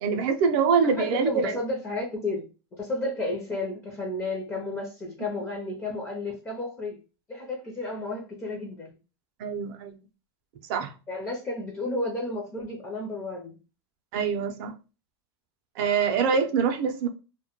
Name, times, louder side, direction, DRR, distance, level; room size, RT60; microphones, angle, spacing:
voice 1, 0.0-1.6 9.4-10.0 10.7-10.9 14.1-14.7 15.8-17.1, right 6 dB, 50° right, 0.5 m, -24 dB
voice 2, 0.8-2.5 2.8-7.0 7.3-9.0 11.1-13.6, left 2 dB, 15° left, 0.5 m, -32 dB
2.1 x 2.1 x 2.8 m
supercardioid pair, 145°, 14 cm